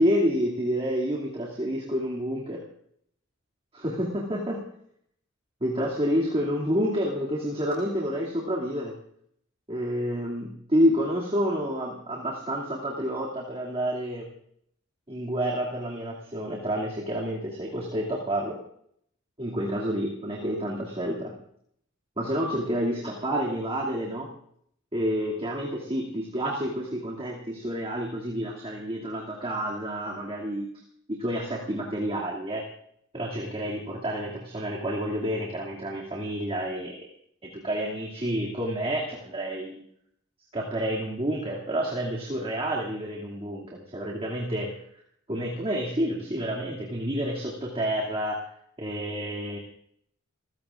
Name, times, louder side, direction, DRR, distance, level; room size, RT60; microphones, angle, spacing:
voice 1, 0.0-2.6 3.7-4.6 5.6-8.9 9.7-14.3 15.1-18.6 19.4-21.3 22.2-24.3 24.9-30.7 31.1-32.6 33.1-37.1 37.6-39.8 40.5-44.7 45.3-48.4 48.8-49.6, equal, 25° right, -3 dB, 2.5 m, -29 dB
29.0 x 15.5 x 2.5 m, 0.67 s
head